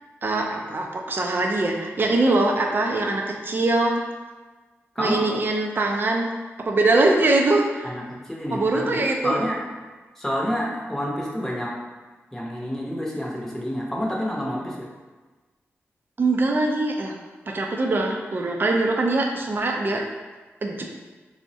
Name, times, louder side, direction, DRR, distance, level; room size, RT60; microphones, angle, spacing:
voice 1, 0.2-4.0 5.0-6.3 6.6-7.9 8.5-9.3 16.2-17.1 17.5-20.0 20.6-20.9, right 2 dB, 45° right, 1 dB, 0.4 m, -22 dB
voice 2, 4.9-5.3 7.8-9.6 10.2-11.7 12.3-14.9, equal, 10° left, -4 dB, 0.7 m, -28 dB
3.4 x 2.1 x 2.7 m, 1.3 s
wide cardioid pair, 80°, 5 cm